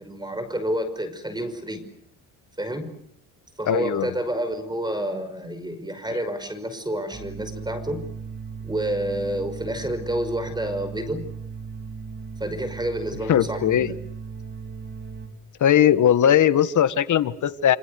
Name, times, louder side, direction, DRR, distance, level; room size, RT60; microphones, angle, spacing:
voice 1, 0.0-1.9 2.6-3.0 3.6-8.1 8.6-11.3 12.4-14.0, right 1 dB, 10° right, 11 dB, 5.5 m, -29 dB
voice 2, 3.7-4.1 13.3-13.9 15.6-17.8, left 10 dB, 50° left, 13 dB, 1.7 m, -19 dB
sound 1, 7.1-15.3, right 5 dB, 25° right, 6.3 m, -37 dB
28.0 x 26.5 x 6.7 m, 0.67 s
supercardioid pair, 80°, 37 cm